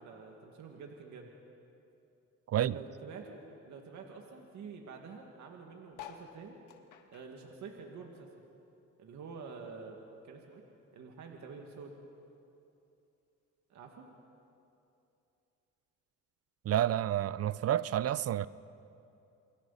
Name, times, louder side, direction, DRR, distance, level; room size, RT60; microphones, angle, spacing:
voice 1, 0.0-1.3 2.6-6.6 7.1-8.3 9.0-10.6 10.9-11.9 13.7-14.1, right 5 dB, 70° right, 2.2 m, -48 dB
sound 1, 5.9-8.7 9.0-10.5 11.0-11.1 11.3-11.4 11.6-12.0 12.8-12.9, left 9 dB, 85° left, 1.7 m, -53 dB
voice 2, 16.6-18.5, right 11 dB, 55° right, 0.6 m, -29 dB
28.0 x 23.0 x 4.2 m
cardioid pair, 90°, 30 cm